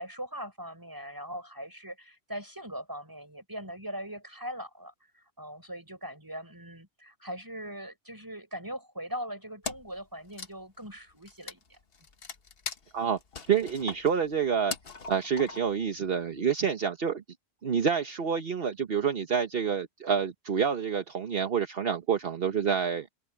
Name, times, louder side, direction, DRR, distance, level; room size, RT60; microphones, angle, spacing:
voice 1, 0.0-11.8, equal, 20° right, 6.6 m, -40 dB
Wood, 9.6-10.0 10.3-15.9, left 5 dB, 60° left, 1.5 m, -41 dB
voice 2, 13.5-14.7 15.1-17.2 17.6-23.1, right 7 dB, 60° right, 1.3 m, -28 dB
open air
omnidirectional pair, 1.1 m